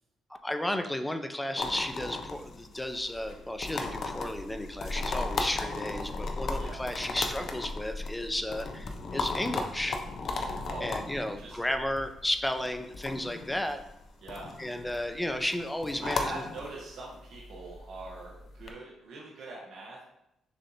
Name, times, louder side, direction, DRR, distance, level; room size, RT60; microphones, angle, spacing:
voice 1, 0.4-10.0 10.8-13.8 14.6-16.3, left 1 dB, 10° left, 7 dB, 0.4 m, -33 dB
sound 1, 1.6-18.7, left 3 dB, 60° left, 0.6 m, -36 dB
voice 2, 10.7-11.0 11.2-11.7 14.2-14.5 16.0-20.0, right 2 dB, 70° right, -4 dB, 1.0 m, -42 dB
6.4 x 2.8 x 2.7 m, 0.84 s
cardioid pair, 90°, 0 cm